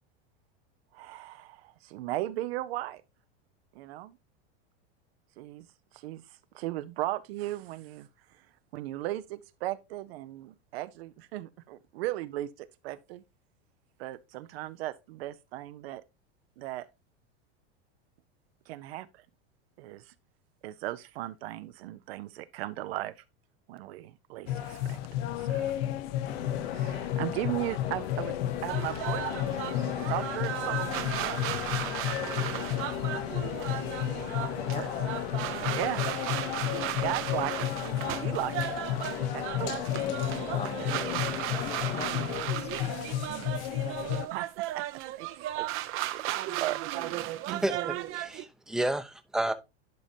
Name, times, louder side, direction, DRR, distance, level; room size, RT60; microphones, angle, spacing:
voice 1, 0.9-3.0 3.7-4.2 5.4-5.7 5.9-8.5 8.7-13.2 14.0-16.0 16.6-16.9 18.7-19.2 19.8-20.1 20.6-23.1 23.7-25.0 25.3-25.7 26.6-31.4 32.0-33.7 34.7-34.9 35.7-36.0 37.0-37.7 38.2-39.0 39.3-39.7 40.8-41.6 44.3-44.5 44.7-44.8 45.2-45.3 45.6-46.8, right 15 dB, 70° right, 0.8 m, -37 dB
sound 1, 24.5-44.3, left 12 dB, 65° left, 0.8 m, -33 dB
sound 2, 26.2-42.4, left 8 dB, 80° left, 1.8 m, -39 dB
sound 3, 28.7-48.4, right 14 dB, 40° right, 0.7 m, -35 dB
voice 2, 40.1-43.4, left 8 dB, 20° left, 0.4 m, -43 dB
voice 3, 47.6-49.5, right 1 dB, ahead, 0.7 m, -31 dB
10.5 x 5.1 x 2.8 m
supercardioid pair, 120°, 32 cm